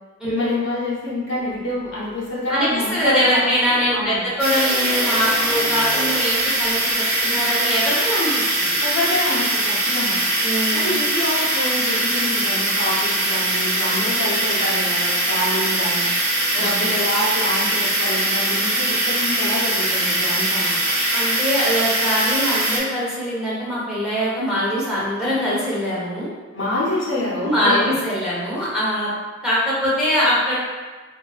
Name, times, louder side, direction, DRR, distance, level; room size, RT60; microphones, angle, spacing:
voice 1, 0.2-4.3 8.8-10.2 10.7-16.1 16.5-20.9 26.5-28.0, left 1 dB, 60° left, -7 dB, 0.9 m, -26 dB
voice 2, 2.5-8.8 10.4-11.0 16.5-16.7 21.1-26.3 27.4-29.1 29.4-30.5, equal, 5° right, -9 dB, 1.0 m, -22 dB
sound 1, 4.4-22.8, right 1 dB, 70° right, 1.1 m, -21 dB
sound 2, 4.6-7.2, left 1 dB, 25° right, 1.4 m, -33 dB
3.6 x 2.9 x 2.4 m, 1.4 s
head